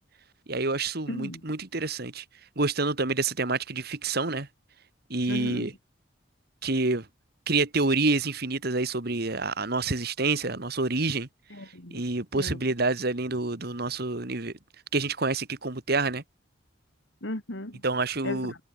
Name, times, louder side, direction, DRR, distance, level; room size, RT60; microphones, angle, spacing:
voice 1, 0.5-2.2 2.6-4.5 5.1-5.7 6.6-7.1 7.5-11.3 11.9-14.5 14.9-16.2 17.8-18.5, right 3 dB, 55° right, 1.9 m, -27 dB
voice 2, 1.1-1.4 5.3-5.7 11.5-12.0 12.3-12.6 17.2-17.8 18.2-18.6, left 1 dB, 70° left, 3.6 m, -36 dB
head